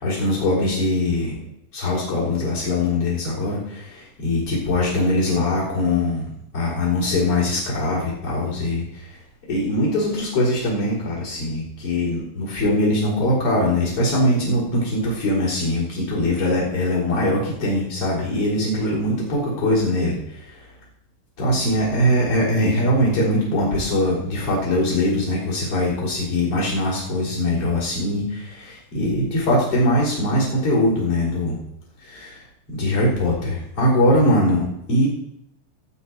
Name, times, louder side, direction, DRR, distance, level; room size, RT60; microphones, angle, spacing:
voice 1, 0.0-1.3 1.7-6.3 6.5-9.2 9.5-20.7 21.4-31.6 32.0-32.4 32.7-35.1, left 1 dB, 35° left, -10 dB, 4.6 m, -22 dB
17.0 x 8.8 x 4.6 m, 0.79 s
omnidirectional pair, 4.4 m